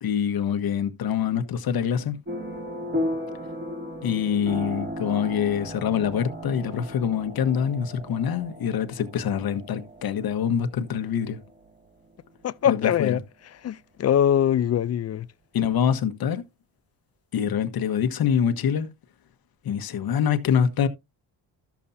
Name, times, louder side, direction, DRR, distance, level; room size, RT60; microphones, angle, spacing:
voice 1, 0.0-2.2 4.0-11.4 12.7-13.2 15.5-16.4 17.3-18.9 19.6-20.9, left 8 dB, 60° left, 1.3 m, -25 dB
sound 1, 2.3-13.0, left 1 dB, 25° right, 2.8 m, -36 dB
voice 2, 12.4-13.2 13.6-15.3, left 9 dB, 40° left, 0.5 m, -22 dB
13.0 x 7.1 x 2.7 m
cardioid pair, 95°, 42 cm